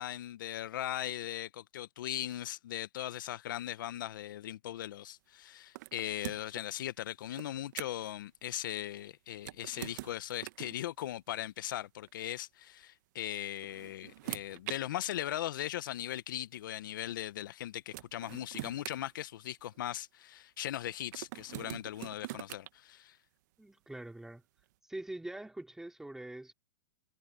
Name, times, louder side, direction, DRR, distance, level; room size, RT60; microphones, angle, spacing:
voice 1, 0.0-23.2, left 12 dB, 65° left, 1.2 m, -39 dB
sound 1, 5.7-6.6 7.4-8.1 9.4-10.8 12.0-12.2 13.4-14.8 15.8-15.9 17.5-17.6 17.9-19.8 21.1-22.7, right 18 dB, 55° right, 1.3 m, -44 dB
voice 2, 23.6-24.4 24.9-26.5, right 1 dB, 5° right, 4.7 m, -44 dB
hypercardioid pair, 130°, 11 cm